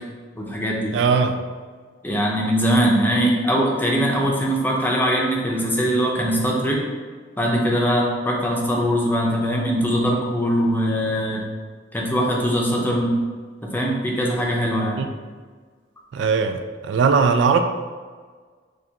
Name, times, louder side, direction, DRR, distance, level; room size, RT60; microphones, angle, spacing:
voice 1, 0.4-1.0 2.0-6.8 7.4-11.4 11.9-13.1 13.6-15.0, equal, 10° left, -2 dB, 0.6 m, -21 dB
voice 2, 0.9-1.3 15.0-15.1 16.1-16.6 16.9-17.6, right 5 dB, 70° right, 6 dB, 0.3 m, -18 dB
6.5 x 2.4 x 2.8 m, 1.5 s
head